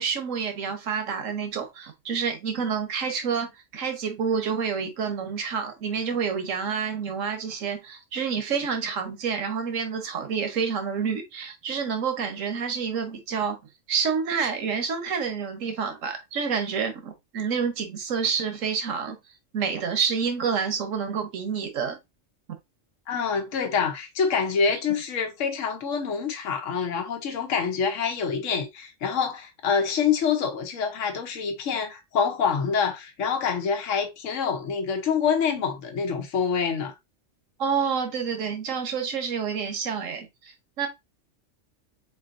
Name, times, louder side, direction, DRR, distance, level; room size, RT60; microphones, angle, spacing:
voice 1, 0.0-13.6 13.9-19.2 19.5-22.0 37.6-40.9, right 6 dB, 85° right, 1.4 m, -28 dB
voice 2, 23.1-36.9, left 6 dB, 80° left, 1.2 m, -26 dB
5.0 x 4.0 x 2.5 m
omnidirectional pair, 1.3 m